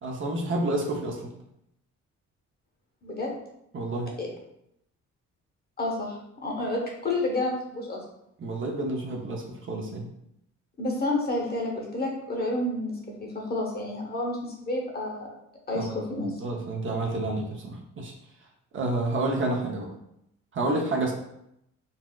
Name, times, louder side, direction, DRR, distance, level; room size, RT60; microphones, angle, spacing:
voice 1, 0.0-1.3 3.7-4.1 8.4-10.1 15.7-18.1 18.7-19.9 20.5-21.1, right 2 dB, 40° right, 1 dB, 0.6 m, -29 dB
voice 2, 3.0-3.3 4.2-4.3 5.8-8.0 10.8-15.3 15.7-16.3, left 2 dB, 30° left, -1 dB, 0.9 m, -30 dB
4.0 x 2.3 x 2.2 m, 0.78 s
cardioid pair, 90°, 30 cm